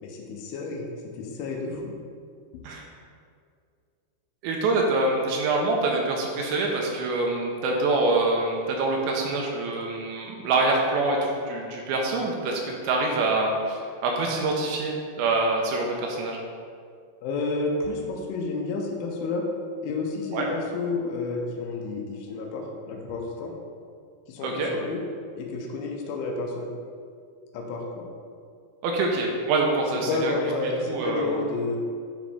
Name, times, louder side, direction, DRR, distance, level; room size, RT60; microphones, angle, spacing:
voice 1, 0.0-1.9 17.2-19.5 19.8-23.5 24.3-25.0 25.4-26.7 27.5-28.1 30.1-31.8, left 3 dB, 90° left, 0 dB, 3.3 m, -30 dB
voice 2, 4.4-16.4 20.3-20.5 24.4-24.7 28.8-30.3 30.9-31.4, right 2 dB, 85° right, 0 dB, 2.9 m, -25 dB
9.9 x 5.1 x 3.5 m, 2.2 s
omnidirectional pair, 5.5 m